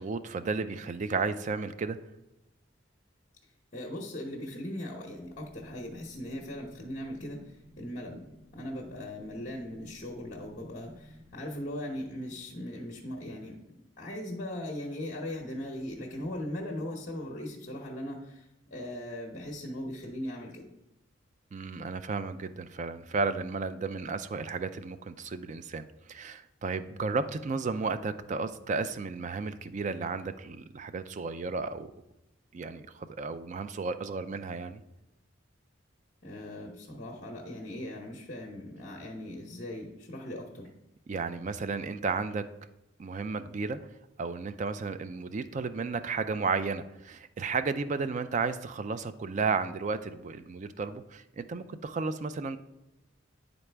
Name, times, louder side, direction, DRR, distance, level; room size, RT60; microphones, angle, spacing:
voice 1, 0.0-2.0 21.5-31.9 32.5-34.8 41.1-42.4 43.0-43.8 44.2-52.6, right 4 dB, 40° right, 11 dB, 0.4 m, -33 dB
voice 2, 3.7-8.3 8.5-13.6 14.0-20.7 36.2-40.7, left 1 dB, 45° left, -1 dB, 0.8 m, -39 dB
sound 1, 5.0-13.2, equal, 80° right, 1.0 m, -58 dB
9.7 x 4.0 x 3.4 m, 0.87 s
head